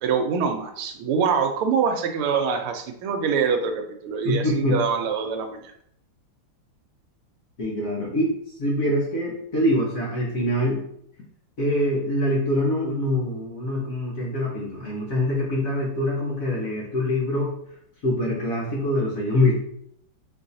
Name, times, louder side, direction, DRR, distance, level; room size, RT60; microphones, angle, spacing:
voice 1, 0.0-4.4 4.7-5.7, right 6 dB, 85° right, 5 dB, 1.5 m, -24 dB
voice 2, 4.2-4.8 7.6-8.3 8.6-10.8 11.6-17.5 18.0-19.5, left 1 dB, 50° left, -4 dB, 1.1 m, -24 dB
4.6 x 4.0 x 2.6 m, 0.72 s
omnidirectional pair, 2.4 m